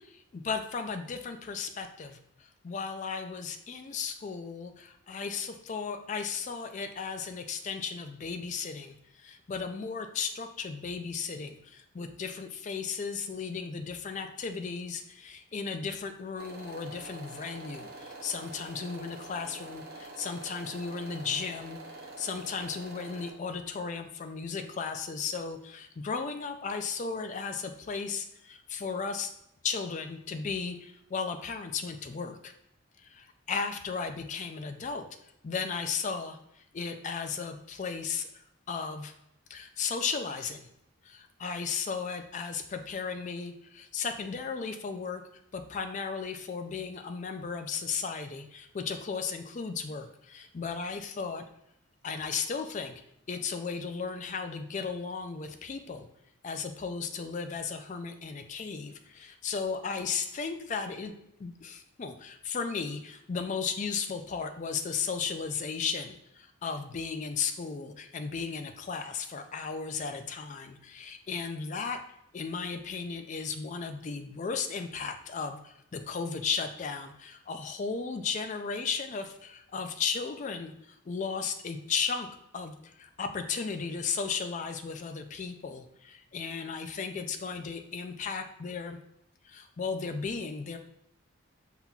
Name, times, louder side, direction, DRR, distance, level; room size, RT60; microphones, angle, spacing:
voice 1, 0.0-2.2 2.6-29.3 29.6-32.5 33.1-35.0 35.4-39.1 39.5-40.7 41.0-45.2 45.5-51.4 52.0-52.9 53.3-56.1 56.4-61.1 61.4-72.0 72.3-82.3 82.5-89.0 89.4-90.8, left 5 dB, 35° left, 7 dB, 0.3 m, -35 dB
sound 1, 16.4-23.3, right 2 dB, 45° right, 0.6 m, -46 dB
5.7 x 3.7 x 2.3 m, 0.78 s
head